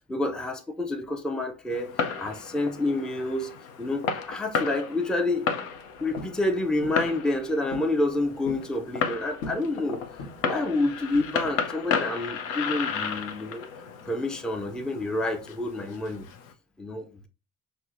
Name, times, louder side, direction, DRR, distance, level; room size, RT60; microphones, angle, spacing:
voice 1, 0.1-3.5 3.8-5.5 6.0-10.0 10.4-13.7 14.0-16.3 16.8-17.3, left 2 dB, ahead, 0.4 m, -28 dB
Fireworks, 1.7-16.5, left 6 dB, 80° left, 0.6 m, -34 dB
sound 1, 6.2-6.4 6.8-7.1 7.7-8.0 8.2-8.7 9.4-9.7 10.2-10.6 11.1-11.6, left 2 dB, 55° left, 0.8 m, -39 dB
5.4 x 2.0 x 2.4 m
hypercardioid pair, 50°, 41 cm